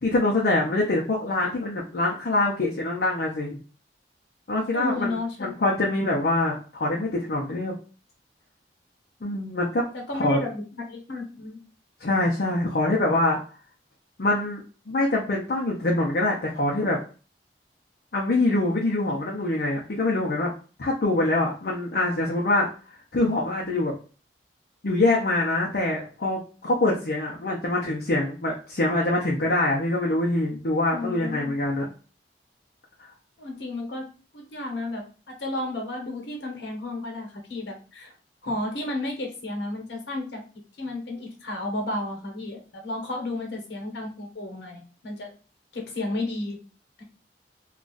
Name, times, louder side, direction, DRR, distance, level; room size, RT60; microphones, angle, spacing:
voice 1, 0.0-3.6 4.5-7.7 9.2-9.8 10.1-10.4 12.0-13.4 14.2-17.0 18.1-20.5 20.8-22.7 23.1-23.9 24.8-31.9, left 2 dB, 60° left, -3 dB, 0.6 m, -24 dB
voice 2, 4.7-5.5 9.9-10.6 10.9-11.6 30.9-31.5 33.4-34.1 34.3-38.1 38.4-40.4 40.8-45.3 45.7-46.6 47.0-47.1, left 2 dB, 80° left, 1 dB, 1.0 m, -32 dB
2.4 x 2.3 x 3.8 m, 0.37 s
head